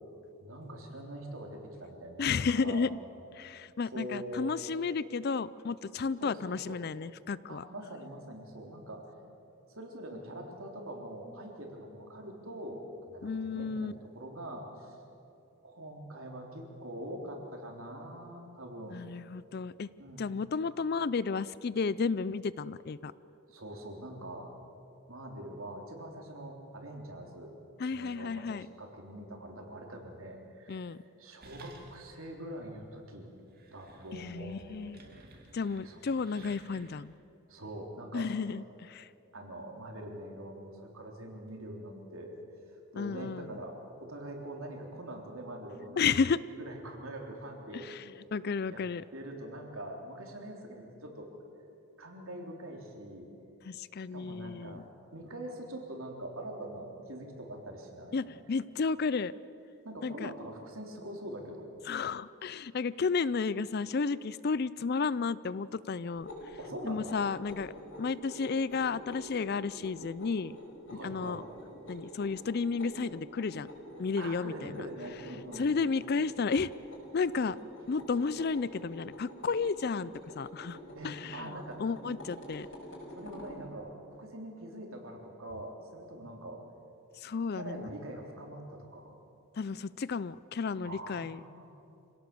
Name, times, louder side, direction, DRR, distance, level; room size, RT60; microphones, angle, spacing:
voice 1, 0.4-2.9 3.9-4.5 6.2-6.8 7.5-9.2 9.8-12.8 13.1-15.0 15.6-19.0 20.0-20.2 23.5-24.5 25.1-27.6 27.9-33.3 33.7-35.2 35.8-36.0 37.5-38.3 39.3-42.3 42.7-47.9 48.7-48.8 49.1-51.3 52.0-53.3 54.1-58.2 59.8-61.7 66.6-67.1 70.9-71.4 74.2-75.7 80.9-81.8 83.1-83.9 84.2-86.6 87.5-89.2 90.8-91.7, right 1 dB, 70° right, 1 dB, 3.5 m, -44 dB
voice 2, 2.2-2.9 3.3-7.6 13.2-13.9 18.9-19.9 20.2-23.1 27.8-28.7 30.7-31.0 34.1-35.0 35.5-37.1 38.1-39.1 42.9-43.6 46.0-46.4 47.7-48.0 48.3-49.0 53.6-54.9 58.1-59.3 60.0-60.3 61.9-66.3 66.9-67.7 68.0-70.6 70.9-71.4 71.9-73.7 74.0-74.7 75.6-76.7 77.1-77.6 77.9-80.8 81.0-82.7 87.2-87.9 89.6-91.4, left 5 dB, 45° left, 18 dB, 0.4 m, -32 dB
sound 1, 31.4-32.2 32.6-32.7 33.3-37.1, right 2 dB, 45° right, 2.5 m, -56 dB
sound 2, 66.1-83.6, equal, 60° left, 5.6 m, -47 dB
26.0 x 17.5 x 6.9 m, 2.7 s
head